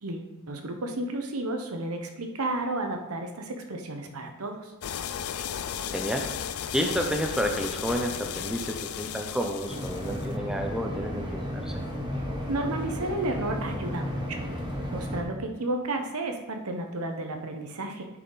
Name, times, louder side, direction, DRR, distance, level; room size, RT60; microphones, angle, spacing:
voice 1, 0.0-4.7 12.5-14.5 14.9-18.1, right 2 dB, 85° right, 4 dB, 1.0 m, -32 dB
sound 1, 4.8-10.3, left 8 dB, 85° left, 0.4 m, -35 dB
voice 2, 5.9-6.3 6.7-11.8, equal, 5° right, 3 dB, 0.5 m, -30 dB
sound 2, 9.7-15.2, equal, 20° right, 1.1 m, -33 dB
9.8 x 4.5 x 3.9 m, 1.0 s
head